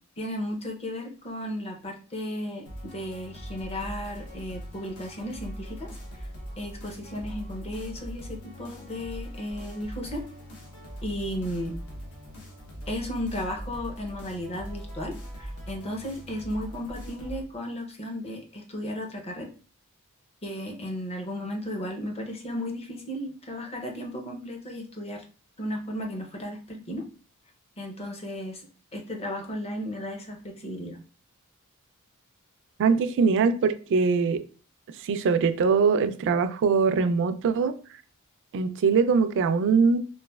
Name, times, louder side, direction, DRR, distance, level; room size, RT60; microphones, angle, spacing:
voice 1, 0.2-6.3 6.6-10.2 11.0-11.7 12.9-19.5 20.4-25.2 25.6-27.1 27.8-28.7 28.9-31.0, equal, 25° left, 0.6 m, -35 dB
sound 1, 2.7-17.4, equal, 75° left, 0.9 m, -41 dB
voice 2, 32.8-34.4 35.0-37.7 38.5-40.0, right 5 dB, 55° right, 0.3 m, -22 dB
3.0 x 2.5 x 2.3 m
head